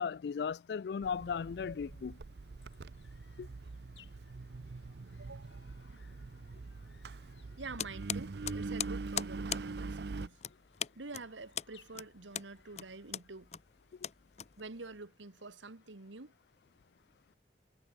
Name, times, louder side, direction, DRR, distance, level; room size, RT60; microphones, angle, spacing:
voice 1, 0.0-2.2 3.4-3.5, left 6 dB, 60° left, 0.3 m, -36 dB
Engine, 1.0-10.3, right 3 dB, 60° right, 0.5 m, -43 dB
sound 1, 2.1-13.6, left 6 dB, 75° left, 5.5 m, -67 dB
voice 2, 5.2-5.7 7.6-10.4 10.9-13.5 14.6-16.3, right 3 dB, 85° right, 1.6 m, -47 dB
sound 2, 7.8-15.0, left 9 dB, 35° left, 0.8 m, -41 dB
head